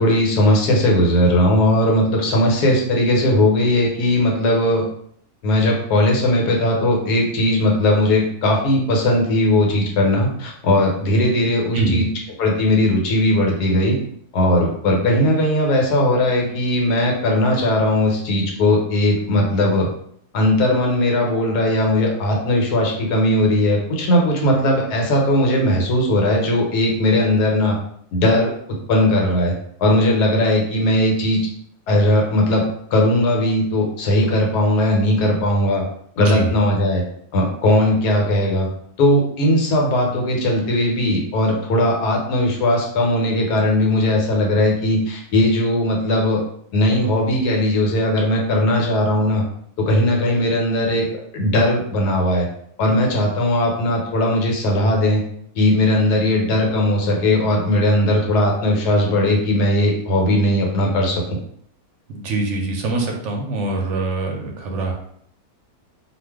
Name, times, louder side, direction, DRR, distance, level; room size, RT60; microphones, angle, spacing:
voice 1, 0.0-4.8 5.4-12.0 12.4-14.0 14.3-19.9 20.3-27.8 28.1-28.5 28.9-29.5 29.8-31.4 31.9-32.6 32.9-35.8 36.2-37.0 37.3-38.7 39.0-46.4 46.7-49.4 49.8-51.0 51.3-52.5 52.8-55.2 55.5-61.4, left 1 dB, 85° left, 0 dB, 1.3 m, -18 dB
voice 2, 11.7-12.0 36.2-36.5 62.1-64.9, right 2 dB, 65° right, 2 dB, 0.8 m, -23 dB
2.5 x 2.4 x 3.4 m, 0.67 s
omnidirectional pair, 1.6 m